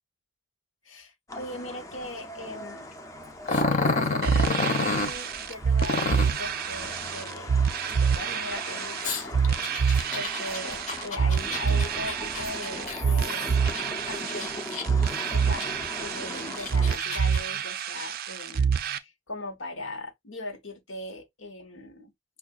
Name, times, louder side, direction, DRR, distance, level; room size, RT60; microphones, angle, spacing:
voice 1, 0.8-2.9 3.7-7.6 7.9-13.5 14.1-14.8 15.3-22.1, left 2 dB, 80° left, 1.1 m, -39 dB
sound 1, 1.3-17.0, left 1 dB, 15° left, 0.5 m, -40 dB
Growling, 3.5-5.1 5.8-6.4 9.0-13.8 14.3-15.1 15.6-15.7 16.4-17.4, left 3 dB, 40° left, 0.8 m, -29 dB
sound 2, 4.2-19.0, right 6 dB, 50° right, 0.4 m, -27 dB
5.5 x 2.4 x 2.3 m
head